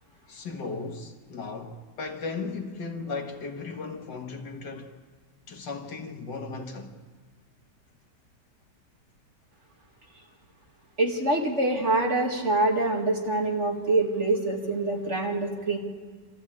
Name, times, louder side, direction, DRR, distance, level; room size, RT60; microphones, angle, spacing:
voice 1, 0.3-4.9 5.5-6.9, left 4 dB, 80° left, 2.3 m, -36 dB
voice 2, 11.0-15.8, right 2 dB, 40° right, 2.7 m, -25 dB
25.5 x 14.5 x 8.6 m
omnidirectional pair, 1.9 m